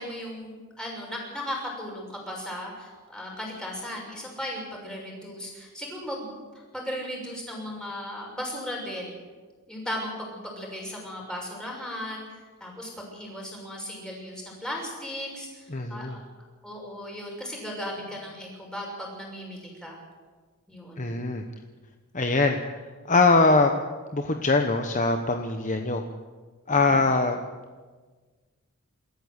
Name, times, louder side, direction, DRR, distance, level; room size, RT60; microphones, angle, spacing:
voice 1, 0.0-6.4 6.7-9.1 9.7-12.2 12.6-15.6 15.9-16.2 16.6-20.0 20.7-21.1 26.7-26.8, equal, 5° left, -2 dB, 6.4 m, -36 dB
voice 2, 15.7-16.2 21.0-21.4 22.1-22.6 23.1-23.7 24.1-26.0 26.7-27.4, left 3 dB, 35° left, 5 dB, 1.1 m, -22 dB
27.0 x 14.0 x 8.1 m, 1.4 s
head